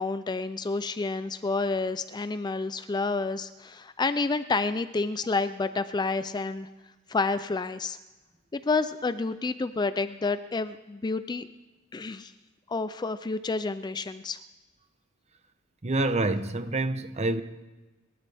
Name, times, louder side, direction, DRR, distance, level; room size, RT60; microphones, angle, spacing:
voice 1, 0.0-6.7 7.1-8.0 8.5-11.5 11.9-12.3 12.7-14.4, left 3 dB, 20° left, 12 dB, 0.4 m, -29 dB
voice 2, 15.8-17.4, right 2 dB, 30° right, 10 dB, 0.8 m, -27 dB
27.0 x 12.5 x 3.5 m, 1.1 s
head